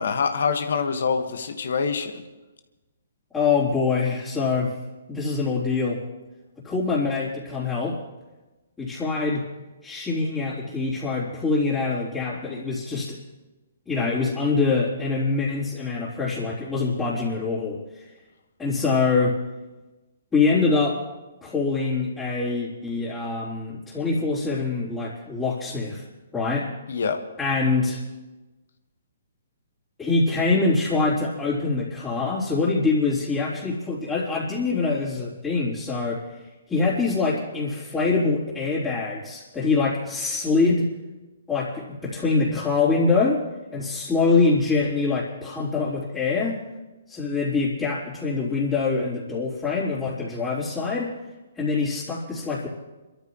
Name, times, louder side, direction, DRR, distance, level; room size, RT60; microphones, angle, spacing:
voice 1, 0.0-2.2 26.9-27.2, left 5 dB, 70° left, 7 dB, 1.7 m, -25 dB
voice 2, 3.3-4.8 5.1-6.0 6.6-8.0 8.8-9.4 9.8-13.2 13.9-18.1 18.6-19.4 20.3-21.1 21.4-26.1 26.3-26.7 27.4-28.0 30.0-36.3 36.7-40.9 41.5-43.4 43.7-46.6 47.1-51.1 51.6-52.7, left 4 dB, 15° left, -10 dB, 3.9 m, -24 dB
28.0 x 13.5 x 3.2 m, 1.1 s
hypercardioid pair, 130°, 0 cm